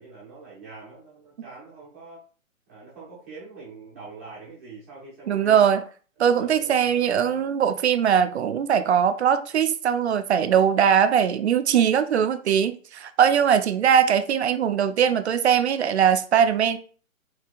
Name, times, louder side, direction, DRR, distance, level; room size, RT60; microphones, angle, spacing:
voice 1, 0.0-2.2 2.7-5.8 6.2-7.4 13.7-13.9, right 4 dB, 10° right, 0.6 m, -44 dB
voice 2, 5.3-5.8 6.2-16.8, right 8 dB, 55° right, 0.5 m, -21 dB
4.6 x 2.7 x 2.4 m
hypercardioid pair, 155°, 42 cm